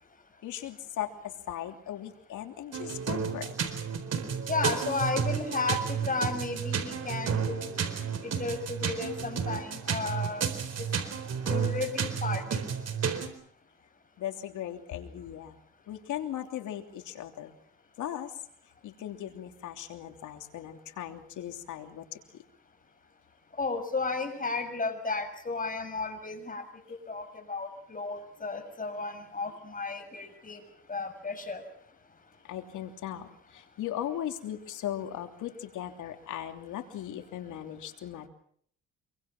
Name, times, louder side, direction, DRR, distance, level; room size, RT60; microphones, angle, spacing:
voice 1, 0.4-3.5 14.2-15.6 15.9-17.5 18.0-18.3 18.8-22.4 32.4-38.3, left 11 dB, 80° left, 5 dB, 3.1 m, -38 dB
sound 1, 2.7-13.3, right 7 dB, 55° right, 4.3 m, -32 dB
voice 2, 4.5-7.8 8.2-10.5 11.4-12.6 23.6-26.6 27.1-30.6 30.9-31.6, left 3 dB, 25° left, 7 dB, 6.6 m, -33 dB
26.5 x 24.0 x 6.1 m, 0.63 s
cardioid pair, 90°, 30 cm